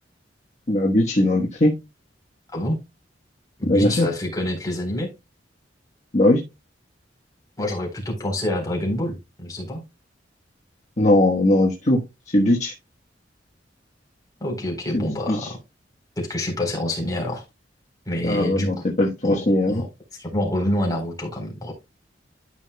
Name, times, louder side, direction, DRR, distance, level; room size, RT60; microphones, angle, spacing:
voice 1, 0.7-1.7 3.6-4.1 6.1-6.4 11.0-12.0 12.3-12.7 14.9-15.5 18.2-19.8, left 1 dB, 40° left, 1.2 m, -19 dB
voice 2, 3.6-5.1 7.6-9.8 14.4-15.6 16.2-17.4 18.1-18.7 19.0-19.9 20.2-21.7, left 1 dB, 20° left, 3.7 m, -27 dB
13.0 x 5.6 x 2.2 m
head